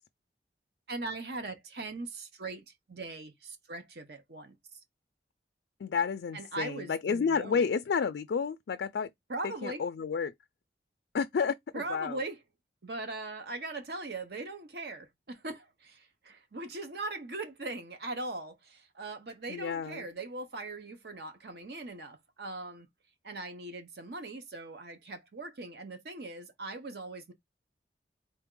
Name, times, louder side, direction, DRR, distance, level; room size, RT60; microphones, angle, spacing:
voice 1, 0.9-4.8 6.3-7.6 9.3-9.8 11.7-12.4 12.8-22.9 23.2-27.3, right 2 dB, 60° right, 0.7 m, -40 dB
voice 2, 5.8-9.1 9.4-10.3 11.1-12.2 19.5-20.0, left 6 dB, 75° left, 0.3 m, -31 dB
4.1 x 3.4 x 3.7 m
head